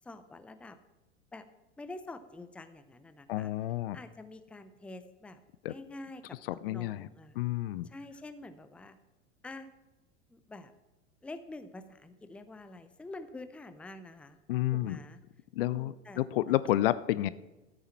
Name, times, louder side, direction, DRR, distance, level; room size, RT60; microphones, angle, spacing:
voice 1, 0.0-0.8 1.3-1.4 1.8-3.5 3.9-5.4 5.7-7.4 7.8-9.0 9.4-9.7 10.3-10.7 11.2-14.4 14.7-15.2 15.7-16.3, left 2 dB, 5° left, 11 dB, 0.5 m, -47 dB
voice 2, 3.3-4.0 5.6-5.7 6.6-7.1 7.4-7.9 14.5-15.0 15.5-17.3, left 15 dB, 50° left, 17 dB, 0.5 m, -30 dB
13.5 x 8.8 x 4.4 m, 1.1 s
figure-of-eight pair, 85°, 35 cm